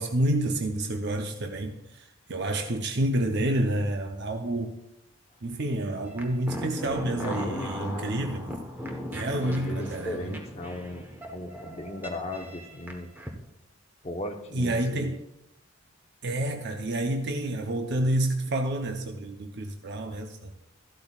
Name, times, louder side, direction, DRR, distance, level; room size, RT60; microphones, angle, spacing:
voice 1, 0.0-1.8 2.3-4.8 5.4-8.5 9.1-10.4 14.5-15.2 16.2-20.5, right 1 dB, 55° right, 0.7 m, -29 dB
sound 1, 6.1-13.3, equal, 10° right, 1.1 m, -38 dB
voice 2, 7.2-8.3 9.4-13.1 14.0-15.1, left 1 dB, 30° left, 1.0 m, -37 dB
13.5 x 12.0 x 2.4 m
head